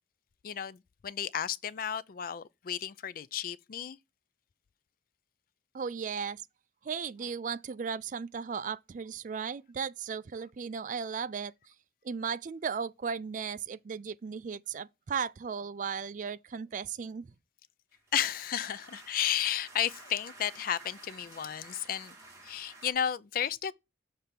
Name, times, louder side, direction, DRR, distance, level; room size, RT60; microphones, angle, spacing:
voice 1, 0.4-4.0 18.1-22.2 22.4-23.7, left 9 dB, 50° left, 0.4 m, -33 dB
voice 2, 5.7-6.4 6.8-11.5 12.0-17.3, right 6 dB, 45° right, 0.3 m, -36 dB
sound 1, 17.9-22.9, right 2 dB, 15° right, 2.8 m, -52 dB
6.8 x 3.4 x 5.7 m
head